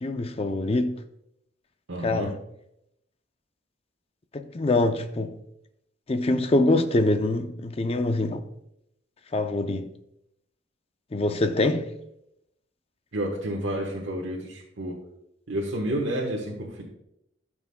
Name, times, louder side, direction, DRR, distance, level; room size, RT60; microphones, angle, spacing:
voice 1, 0.0-1.0 2.0-2.3 4.3-5.3 6.1-8.4 9.3-9.9 11.1-11.9, left 2 dB, 30° left, 0.5 m, -24 dB
voice 2, 1.9-2.3 13.1-15.0 15.5-16.8, right 1 dB, 85° right, 1.2 m, -30 dB
13.0 x 6.0 x 2.2 m
head